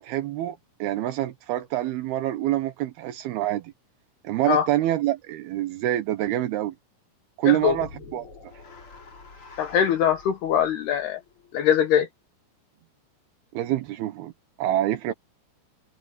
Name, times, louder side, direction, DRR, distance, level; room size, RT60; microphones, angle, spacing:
voice 1, 0.0-3.6 4.2-6.7 7.4-8.3 13.5-14.3 14.6-15.1, right 14 dB, 85° right, 2.2 m, -26 dB
voice 2, 7.5-7.8 9.6-11.2 11.5-12.1, left 9 dB, 70° left, 2.6 m, -22 dB
sound 1, 7.6-11.9, left 3 dB, 30° left, 3.8 m, -47 dB
omnidirectional pair, 6.0 m